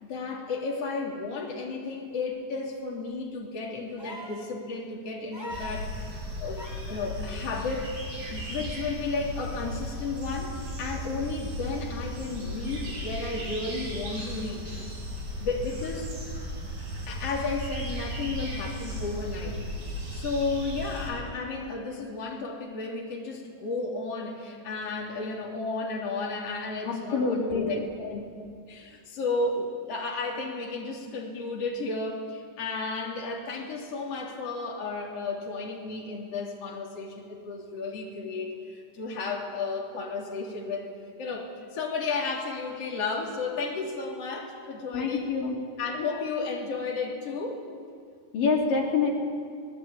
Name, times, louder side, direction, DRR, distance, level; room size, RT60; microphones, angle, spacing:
voice 1, 0.0-7.9 8.3-14.7 15.4-16.1 17.1-19.6 20.1-28.2 28.7-40.9 41.2-45.3 45.8-47.7, left 3 dB, 45° left, -2 dB, 4.1 m, -33 dB
sound 1, 4.0-4.5 5.3-5.8 6.5-7.0 8.5-8.6, left 1 dB, 5° left, 3.4 m, -41 dB
sound 2, 5.5-21.1, equal, 80° right, 8.5 m, -36 dB
voice 2, 26.9-27.7 44.9-45.5 48.3-49.1, left 4 dB, 75° left, -1 dB, 4.9 m, -26 dB
27.5 x 19.5 x 8.9 m, 2.2 s
omnidirectional pair, 3.9 m